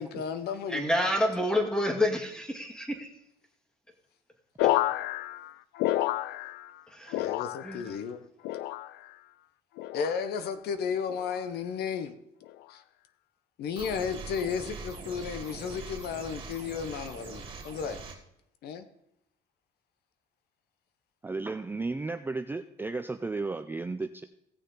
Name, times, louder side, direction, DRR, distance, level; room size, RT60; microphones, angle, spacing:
voice 1, 0.0-0.8 7.1-8.2 9.9-12.2 12.7-12.8 13.6-18.0 18.6-18.9, left 6 dB, 70° left, 0.9 m, -33 dB
voice 2, 0.7-3.1 4.6-4.8 6.9-7.2 7.6-7.8, left 1 dB, 5° left, 2.1 m, -28 dB
sound 1, 4.6-6.8 7.1-8.0 8.4-9.1 9.8-10.2 11.1-11.5 12.4-12.7, left 15 dB, 85° left, 0.4 m, -30 dB
sound 2, 13.8-18.2, right 4 dB, 30° right, 2.5 m, -42 dB
voice 3, 21.2-24.2, right 3 dB, 10° right, 0.4 m, -34 dB
17.0 x 6.6 x 3.8 m
cardioid pair, 110°, 17 cm